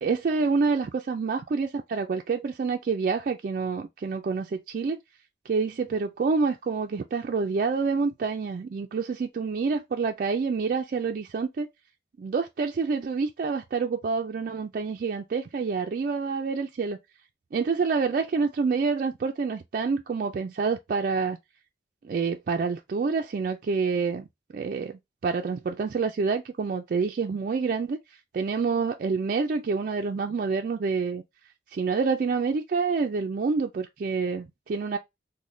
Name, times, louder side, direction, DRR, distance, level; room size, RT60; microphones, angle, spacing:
voice 1, 0.0-5.0 5.5-11.7 12.2-17.0 17.5-21.4 22.0-24.3 24.5-28.0 28.3-31.2 31.7-35.0, right 4 dB, 50° right, 0.3 m, -27 dB
3.8 x 2.1 x 3.1 m
head